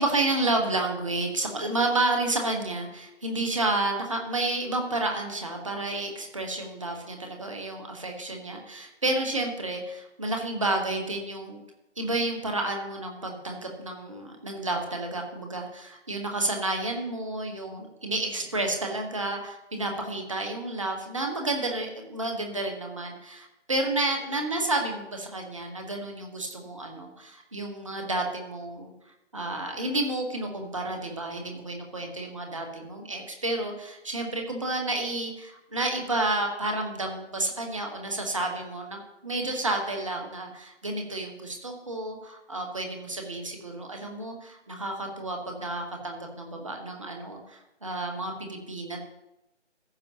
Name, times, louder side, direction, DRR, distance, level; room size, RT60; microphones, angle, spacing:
voice 1, 0.0-11.6 12.0-28.9 29.3-49.0, right 2 dB, 25° right, 2 dB, 1.1 m, -30 dB
15.0 x 6.7 x 2.8 m, 0.88 s
figure-of-eight pair, 155°, 36 cm